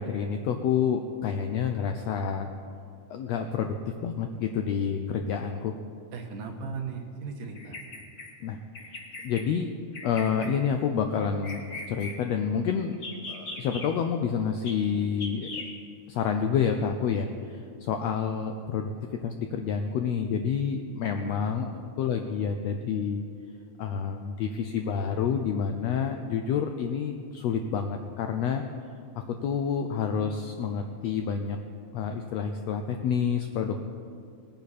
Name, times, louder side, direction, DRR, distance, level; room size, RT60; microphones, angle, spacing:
voice 1, 0.0-2.5 3.1-5.7 8.4-8.6 9.2-9.7 10.0-11.6 11.9-12.9 13.3-15.5 16.1-18.9 19.2-21.7 22.0-23.2 23.8-28.6 29.1-31.6 31.9-33.8, left 7 dB, 85° left, 5 dB, 1.5 m, -28 dB
voice 2, 6.1-7.8 21.2-21.9, right 5 dB, 85° right, 3 dB, 2.8 m, -38 dB
Bird vocalization bird call bird song, 7.5-8.3 8.7-9.4 9.9-10.5 11.2-12.2 12.9-13.9 14.6-14.7 15.2-15.7, left 3 dB, 40° left, 1.4 m, -39 dB
19.5 x 10.0 x 4.2 m, 2.4 s
omnidirectional pair, 3.6 m